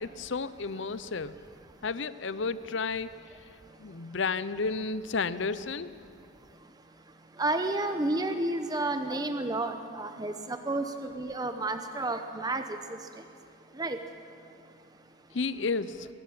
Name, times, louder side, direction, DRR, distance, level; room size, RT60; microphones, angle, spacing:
voice 1, 0.0-1.3 1.8-3.1 3.8-6.0 15.3-16.1, left 4 dB, 65° left, 15 dB, 0.7 m, -32 dB
voice 2, 7.4-12.6 13.8-14.0, right 2 dB, 20° right, 7 dB, 0.8 m, -31 dB
23.0 x 13.5 x 8.7 m, 2.5 s
head